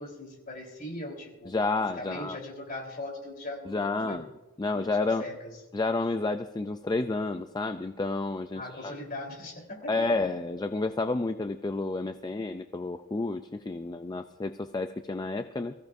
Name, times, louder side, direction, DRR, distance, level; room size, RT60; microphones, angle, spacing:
voice 1, 0.0-1.5 1.8-4.3 4.7-5.6 8.5-10.1, left 1 dB, 40° left, 0 dB, 3.9 m, -40 dB
voice 2, 1.5-2.4 3.7-4.3 4.6-5.2 5.7-8.9 9.9-15.7, left 3 dB, 20° left, 8 dB, 0.4 m, -30 dB
23.0 x 15.5 x 2.6 m, 1.1 s
head